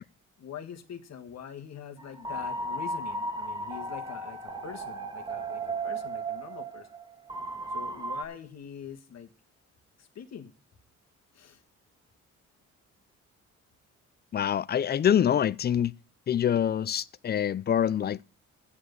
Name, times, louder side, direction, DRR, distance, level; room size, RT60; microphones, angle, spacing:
voice 1, 0.4-4.4 4.6-6.9 7.7-9.3 10.0-10.5 11.3-11.6, left 8 dB, 60° left, 1.5 m, -44 dB
sound 1, 2.0-8.2, right 2 dB, 15° right, 1.8 m, -35 dB
voice 2, 14.3-16.0 16.3-18.2, left 9 dB, 35° left, 0.4 m, -25 dB
8.6 x 7.2 x 6.6 m
cardioid pair, 90°, 30 cm